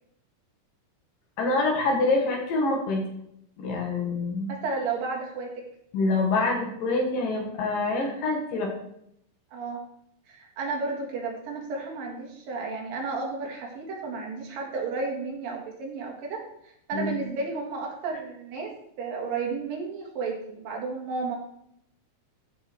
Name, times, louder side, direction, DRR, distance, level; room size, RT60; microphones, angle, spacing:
voice 1, 1.4-3.0 3.6-4.5 5.9-8.7 16.9-17.2, left 3 dB, 70° left, 1 dB, 3.5 m, -26 dB
voice 2, 4.5-5.6 9.5-9.8 10.3-16.4 16.9-18.7 19.0-21.4, right 4 dB, 75° right, 0 dB, 3.6 m, -32 dB
14.0 x 5.9 x 4.6 m, 0.73 s
omnidirectional pair, 4.1 m